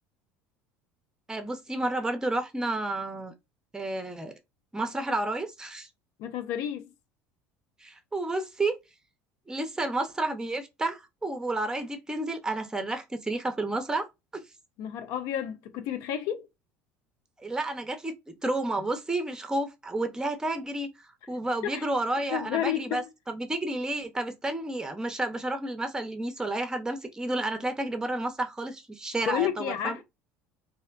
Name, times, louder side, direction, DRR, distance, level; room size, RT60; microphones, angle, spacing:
voice 1, 1.3-3.3 3.7-4.3 4.7-5.9 7.8-8.8 9.5-14.1 14.3-14.4 17.4-20.9 21.3-30.0, right 2 dB, 10° right, 0.7 m, -31 dB
voice 2, 6.2-6.9 14.8-16.5 21.6-21.9 22.3-23.0 29.3-30.0, left 10 dB, 65° left, 0.4 m, -31 dB
2.6 x 2.1 x 2.3 m
supercardioid pair, 85°, 6 cm